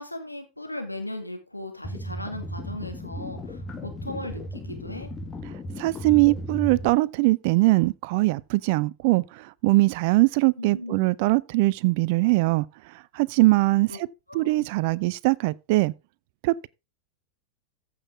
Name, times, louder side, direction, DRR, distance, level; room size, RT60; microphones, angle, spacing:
voice 1, 0.0-5.1 10.6-11.1 13.9-14.0 14.3-14.7, left 1 dB, 85° left, 2.1 m, -37 dB
sound 1, 1.8-6.9, equal, 20° left, 1.5 m, -35 dB
voice 2, 5.8-9.2 9.6-12.7 13.1-13.9 14.3-15.9 16.4-16.7, right 22 dB, 50° right, 0.5 m, -21 dB
14.5 x 5.6 x 3.5 m
figure-of-eight pair, 90°, 0 cm